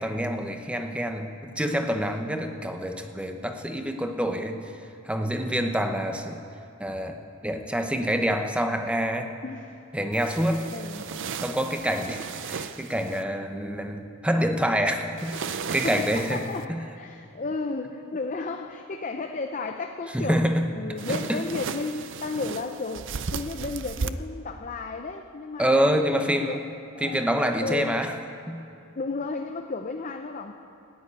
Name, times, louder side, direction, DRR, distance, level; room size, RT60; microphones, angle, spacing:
voice 1, 0.0-4.7 5.0-6.4 6.8-7.2 7.4-9.3 9.9-10.7 11.4-16.4 16.7-16.8 20.1-20.7 21.1-21.4 25.6-26.6 27.0-28.1 28.5-28.6, equal, 5° right, 5 dB, 0.8 m, -27 dB
voice 2, 9.4-9.8 10.7-11.1 15.8-20.4 20.7-26.6 26.9-27.3 27.6-28.0 29.0-30.5, left 3 dB, 35° left, 5 dB, 0.6 m, -33 dB
sound 1, 10.1-13.2 15.2-16.7 21.0-24.1, right 5 dB, 55° right, 0.5 m, -35 dB
14.5 x 9.4 x 9.5 m, 2.7 s
head